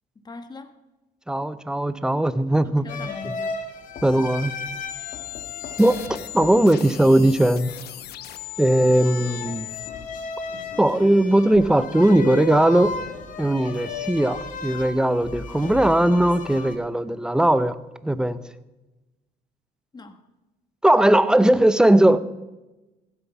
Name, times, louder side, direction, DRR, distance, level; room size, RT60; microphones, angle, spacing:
voice 1, 0.2-0.7 2.6-3.6 19.9-20.2, left 3 dB, 25° left, 9 dB, 1.2 m, -40 dB
voice 2, 1.3-2.9 4.0-4.5 5.8-7.7 8.6-9.7 10.8-12.9 13.4-17.8 18.0-18.4 20.8-22.2, right 1 dB, 5° right, 14 dB, 0.6 m, -19 dB
sound 1, 2.9-16.7, left 5 dB, 50° left, 1.6 m, -35 dB
sound 2, 4.9-9.9, left 16 dB, 70° left, 0.9 m, -38 dB
15.5 x 8.1 x 5.8 m, 1.0 s
cardioid pair, 110°, 17 cm